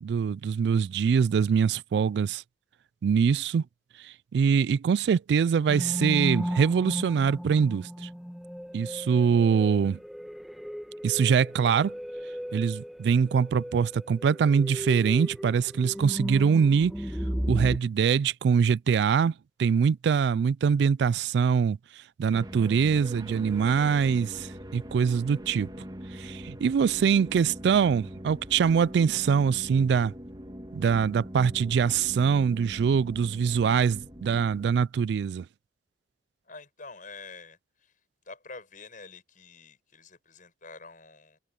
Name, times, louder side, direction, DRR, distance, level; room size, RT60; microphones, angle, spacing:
voice 1, 0.0-2.4 3.0-3.6 4.3-8.1 8.7-10.0 11.0-11.9 12.5-16.9 17.5-19.3 19.6-21.8 22.2-25.7 26.2-30.1 30.7-35.4, right 6 dB, 65° right, 0.3 m, -23 dB
sound 1, 5.7-17.8, equal, ahead, 1.2 m, -35 dB
voice 2, 9.0-9.3 36.4-37.9 38.3-41.4, left 4 dB, 50° left, 7.3 m, -47 dB
sound 2, 22.3-34.9, equal, 25° right, 2.4 m, -42 dB
head